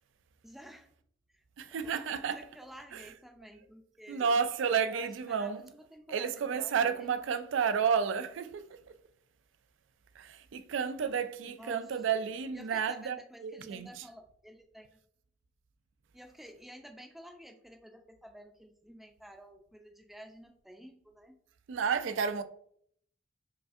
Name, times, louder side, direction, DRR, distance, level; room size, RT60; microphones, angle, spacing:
voice 1, 0.4-0.9 1.3-1.4 2.0-4.3 4.9-7.1 11.5-12.2 12.5-15.0 16.1-21.4, equal, ahead, 0.4 m, -51 dB
voice 2, 1.6-2.5 2.9-3.1 4.1-5.7 6.1-9.0 10.1-14.1 21.7-22.4, right 6 dB, 80° right, 0.4 m, -31 dB
4.8 x 2.5 x 2.4 m
head